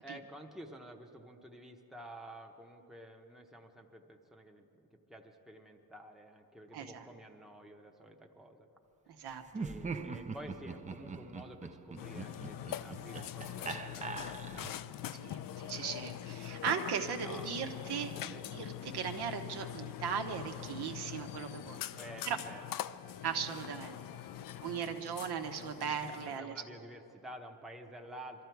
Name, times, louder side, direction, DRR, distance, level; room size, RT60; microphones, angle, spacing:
voice 1, 0.0-8.7 9.5-14.8 17.1-17.5 18.3-18.4 21.9-22.6 26.2-28.4, right 1 dB, ahead, 2 dB, 0.8 m, -51 dB
voice 2, 6.7-7.0 9.1-9.7 15.1-21.8 22.2-22.4 23.2-26.6, right 7 dB, 80° right, 5 dB, 1.2 m, -38 dB
Laughter, 9.5-14.9, right 4 dB, 20° right, 0.4 m, -42 dB
Burping eructation, 12.0-26.4, left 12 dB, 60° left, 0.5 m, -43 dB
23.0 x 13.5 x 4.6 m, 2.7 s
cardioid pair, 155°, 39 cm